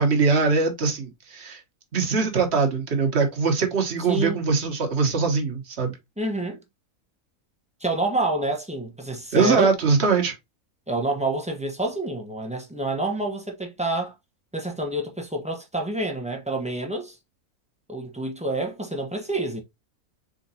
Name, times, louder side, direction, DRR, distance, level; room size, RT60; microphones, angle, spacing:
voice 1, 0.0-1.6 1.9-5.9 9.3-10.4, right 4 dB, 50° right, 1.4 m, -22 dB
voice 2, 4.1-4.4 6.2-6.6 7.8-9.7 10.9-14.1 14.5-17.2 17.9-19.6, right 2 dB, 5° right, 0.8 m, -28 dB
4.3 x 3.8 x 2.8 m
omnidirectional pair, 1.5 m